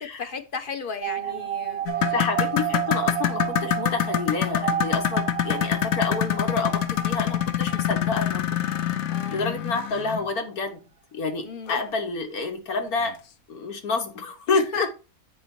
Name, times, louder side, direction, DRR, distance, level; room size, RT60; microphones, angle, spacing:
voice 1, 0.0-2.2 9.1-9.6 11.4-11.8 14.5-14.9, left 4 dB, 45° left, 0.8 m, -35 dB
sound 1, 1.0-9.5 9.8-9.9 10.1-10.2, right 12 dB, 55° right, 0.8 m, -32 dB
sound 2, 1.9-10.3 11.7-11.8 12.3-12.4 13.0-13.1, left 11 dB, 75° left, 1.1 m, -26 dB
voice 2, 2.1-8.4 8.8-8.9 9.3-10.8 11.1-13.2 13.5-14.9, left 3 dB, 90° left, 1.7 m, -28 dB
8.5 x 4.6 x 4.4 m
omnidirectional pair, 1.5 m